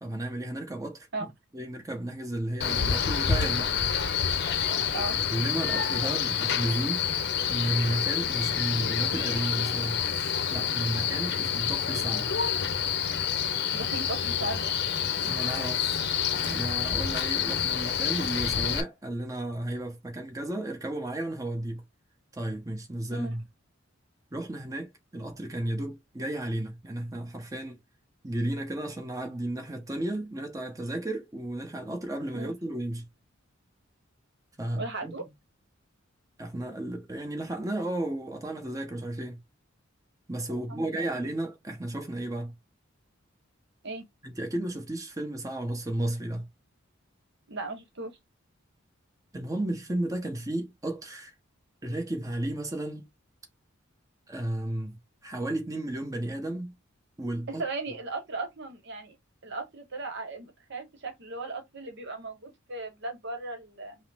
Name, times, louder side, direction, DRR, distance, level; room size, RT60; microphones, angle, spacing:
voice 1, 0.0-3.7 5.3-7.1 7.5-10.0 10.5-12.3 15.3-16.0 16.4-21.8 22.3-23.4 24.3-27.8 28.2-33.1 34.6-35.2 36.4-39.4 40.3-42.5 44.2-46.5 49.3-51.3 51.8-53.1 54.3-56.7 57.2-57.6, right 1 dB, 15° right, 1.0 m, -33 dB
Male speech man speaking, 2.6-18.8, left 8 dB, 55° left, 0.7 m, -28 dB
voice 2, 13.7-14.7 23.1-23.3 32.3-32.5 34.8-35.2 40.5-41.0 43.8-44.1 47.5-48.2 57.5-59.2 59.4-64.0, right 2 dB, 60° right, 1.0 m, -37 dB
5.5 x 2.1 x 3.4 m
head